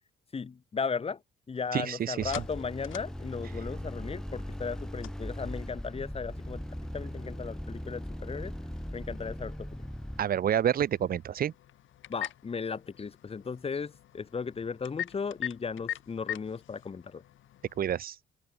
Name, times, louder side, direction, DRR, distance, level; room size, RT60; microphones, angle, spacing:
voice 1, 0.3-1.2 1.5-6.6 6.9-8.6 8.9-9.8 12.1-17.2, left 5 dB, 30° left, 1.1 m, -36 dB
sound 1, 1.5-17.9, left 13 dB, 80° left, 3.7 m, -45 dB
voice 2, 1.7-2.3 10.2-11.5 17.8-18.2, right 9 dB, 50° right, 0.6 m, -28 dB
sound 2, 2.2-10.2, equal, 5° left, 3.6 m, -39 dB
cardioid pair, 90°, 20 cm